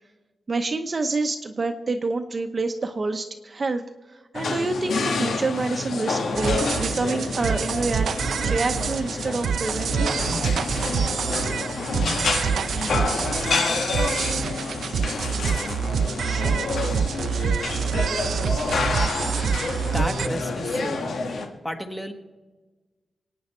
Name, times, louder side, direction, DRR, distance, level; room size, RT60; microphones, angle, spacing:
voice 1, 0.5-3.8 4.1-8.1 8.4-10.1, right 3 dB, 30° right, 6 dB, 0.8 m, -27 dB
sound 1, 4.3-21.5, left 3 dB, 90° left, 1.7 m, -28 dB
sound 2, 6.4-20.3, right 7 dB, 90° right, 0.5 m, -26 dB
voice 2, 19.6-21.3 21.6-22.1, equal, 5° left, 5 dB, 1.3 m, -33 dB
26.0 x 9.3 x 4.4 m, 1.3 s
wide cardioid pair, 170°, 0 cm